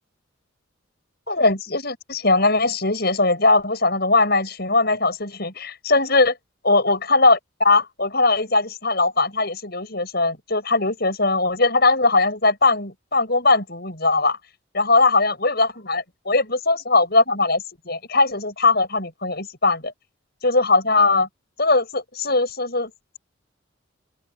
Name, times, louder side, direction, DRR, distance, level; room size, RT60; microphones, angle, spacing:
voice 1, 1.3-6.4 6.6-14.4 14.7-19.9 20.4-21.3 21.6-22.9, left 3 dB, 50° left, 7.6 m, -20 dB
open air
head